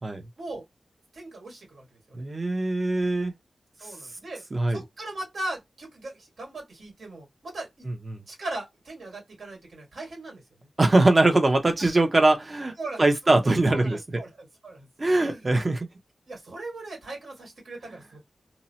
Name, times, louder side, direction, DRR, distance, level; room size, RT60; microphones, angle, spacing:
voice 1, 1.1-2.2 3.8-4.4 4.7-7.9 8.3-10.7 12.8-13.3 13.7-14.9 15.2-15.5 16.3-18.2, right 2 dB, 80° right, 1.6 m, -39 dB
voice 2, 2.1-3.3 4.5-4.8 8.1-8.2 10.8-14.0 15.0-15.9, right 2 dB, 35° right, 0.7 m, -22 dB
2.8 x 2.0 x 2.7 m
wide cardioid pair, 85°, 0 cm